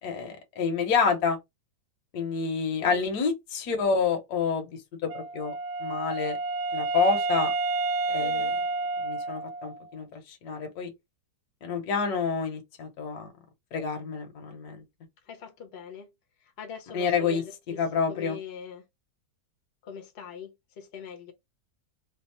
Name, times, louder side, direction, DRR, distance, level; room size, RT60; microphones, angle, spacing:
voice 1, 0.0-1.4 2.1-5.5 5.8-6.4 6.7-7.5 8.1-8.5 9.0-10.9 11.6-13.3 13.7-14.8 16.9-17.4 17.8-18.4, left 5 dB, 65° left, 1.4 m, -28 dB
voice 2, 2.8-3.1 8.2-8.6 15.2-16.1 16.4-18.8 19.8-21.3, left 7 dB, 50° left, 0.9 m, -43 dB
Wind instrument woodwind instrument, 5.1-9.9, right 3 dB, 75° right, 1.1 m, -30 dB
3.4 x 2.0 x 4.1 m
omnidirectional pair, 1.8 m